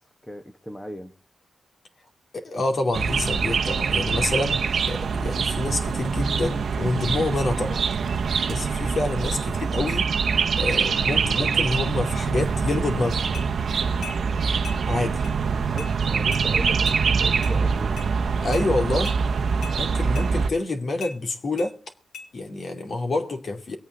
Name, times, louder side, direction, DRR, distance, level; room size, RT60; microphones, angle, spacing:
voice 1, 0.2-1.1 15.5-18.0, equal, 10° left, 1.2 m, -37 dB
voice 2, 2.3-7.8 8.5-10.1 10.6-13.3 14.9-15.2 18.4-19.1 19.8-21.8 22.3-23.8, left 2 dB, 50° left, 2.5 m, -27 dB
sound 1, 2.9-20.5, right 5 dB, 65° right, 0.9 m, -24 dB
sound 2, 13.3-13.5 14.0-14.2 14.6-14.8 15.2-15.4 15.8-15.9 16.3-16.5 16.9-17.0 17.4-17.6 18.0-18.1 18.5-18.7 19.1-19.2 19.6-19.8 20.2-20.3 21.0-21.2 21.6-21.7 22.1-22.3, left 5 dB, 75° left, 4.6 m, -38 dB
23.5 x 8.7 x 3.9 m
wide cardioid pair, 110°, 0 cm